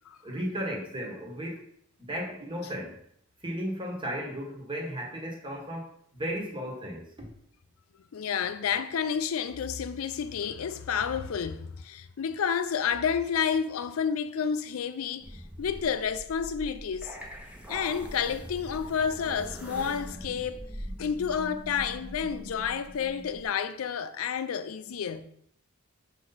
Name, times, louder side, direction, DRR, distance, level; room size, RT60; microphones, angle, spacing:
voice 1, 0.2-1.6 2.0-3.0 3.4-7.3, equal, 25° right, 1.4 m, -35 dB
voice 2, 8.1-17.2 17.7-20.6 21.0-25.3, left 7 dB, 75° left, 0.4 m, -30 dB
sound 1, 15.2-23.4, equal, 5° right, 0.9 m, -42 dB
5.5 x 4.8 x 4.0 m
head